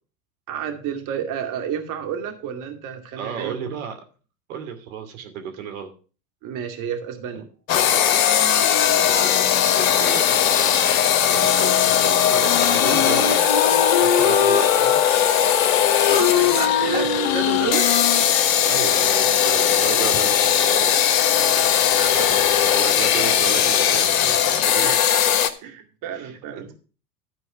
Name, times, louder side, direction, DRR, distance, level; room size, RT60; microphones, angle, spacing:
voice 1, 0.5-3.6 6.4-7.4 16.1-17.9 21.9-22.7 24.8-25.2 25.6-26.7, right 8 dB, 45° right, 4 dB, 2.3 m, -30 dB
voice 2, 3.2-4.0 4.5-5.9 8.9-9.3 9.8-10.4 11.2-15.0 18.6-20.9 22.1-22.3 22.7-24.9 25.5-25.6 26.1-26.7, right 7 dB, 70° right, 6 dB, 2.7 m, -33 dB
sound 1, 7.7-25.5, left 9 dB, 65° left, 1.3 m, -19 dB
Wind instrument woodwind instrument, 12.4-18.3, left 8 dB, 50° left, 1.7 m, -24 dB
12.5 x 4.7 x 6.7 m, 0.37 s
hypercardioid pair, 90°, 43 cm